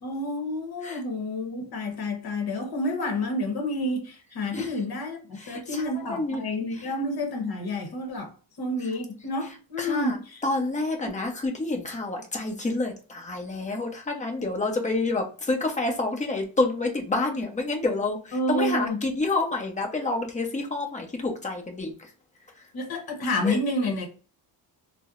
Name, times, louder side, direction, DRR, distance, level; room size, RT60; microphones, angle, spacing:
voice 1, 0.0-8.3 8.6-10.4 11.0-11.1 18.3-19.0 22.7-24.1, left 1 dB, 55° left, 1.1 m, -29 dB
voice 2, 5.5-6.4 9.8-10.2 10.4-21.9 23.4-23.6, left 2 dB, 15° left, 0.7 m, -28 dB
4.3 x 2.1 x 2.4 m
cardioid pair, 120°, 46 cm